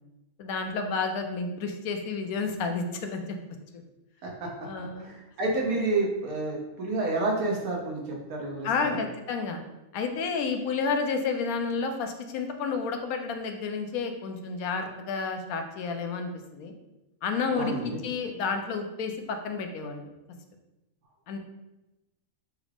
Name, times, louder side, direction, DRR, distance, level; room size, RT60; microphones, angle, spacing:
voice 1, 0.4-3.4 4.6-5.2 8.6-9.6 9.9-16.7 17.2-20.1 21.3-21.4, left 4 dB, 80° left, 5 dB, 1.0 m, -31 dB
voice 2, 5.0-8.0 8.3-9.0 17.5-18.0, right 2 dB, 80° right, -1 dB, 1.4 m, -29 dB
6.1 x 2.4 x 3.3 m, 0.99 s
omnidirectional pair, 1.5 m